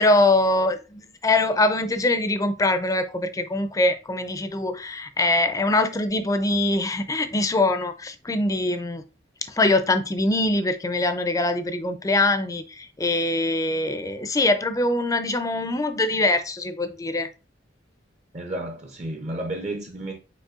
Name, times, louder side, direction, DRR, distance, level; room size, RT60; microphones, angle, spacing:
voice 1, 0.0-9.0 9.5-17.3, left 2 dB, 20° left, 0.4 m, -23 dB
voice 2, 18.3-20.2, right 1 dB, 40° right, 0.6 m, -32 dB
5.3 x 4.1 x 2.4 m
head